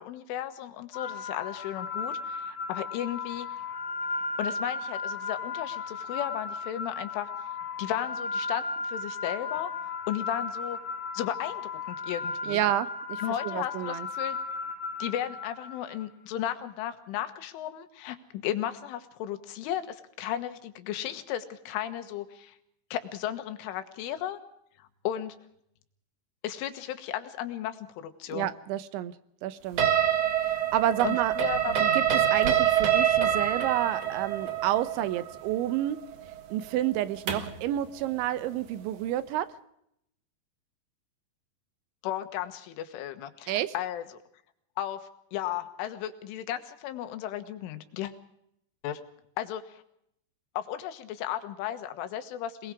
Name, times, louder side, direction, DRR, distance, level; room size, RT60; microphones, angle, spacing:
voice 1, 0.0-3.5 4.4-7.3 7.8-9.7 10.1-10.8 11.1-12.6 13.2-14.4 15.0-22.6 22.9-24.4 24.8-25.4 26.4-28.5 31.0-31.7 42.0-44.0 44.8-45.0 45.3-48.1 48.8-49.0 49.4-49.8 50.6-52.7, left 11 dB, 90° left, 9 dB, 3.9 m, -35 dB
sound 1, 0.9-16.1, left 4 dB, 50° left, 2.8 m, -35 dB
voice 2, 12.5-14.1 28.3-29.1 29.4-29.9 30.4-31.3 31.7-36.0 36.5-39.5 43.5-43.7, right 13 dB, 80° right, 13 dB, 3.2 m, -29 dB
sound 2, 29.8-37.6, right 9 dB, 55° right, 2.2 m, -26 dB
26.5 x 20.0 x 4.8 m, 0.74 s
omnidirectional pair, 5.5 m